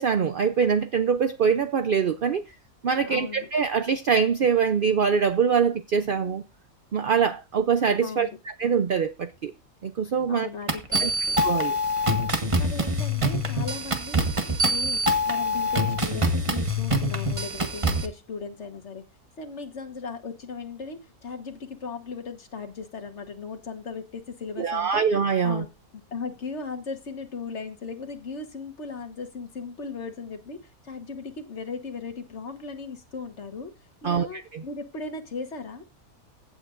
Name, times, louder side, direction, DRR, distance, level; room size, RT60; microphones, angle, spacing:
voice 1, 0.0-2.4 2.8-6.4 6.9-9.5 9.8-10.5 11.0-11.1 11.4-11.8 24.6-25.6 34.0-34.6, right 6 dB, 65° right, 0.5 m, -24 dB
voice 2, 3.0-3.5 8.0-8.4 10.3-11.4 12.5-15.0 15.3-19.0 19.4-25.0 25.4-25.7 26.1-33.7 34.0-35.8, left 4 dB, 50° left, 1.5 m, -37 dB
sound 1, 10.7-18.1, equal, 25° right, 1.0 m, -25 dB
15.5 x 8.2 x 2.5 m
omnidirectional pair, 1.6 m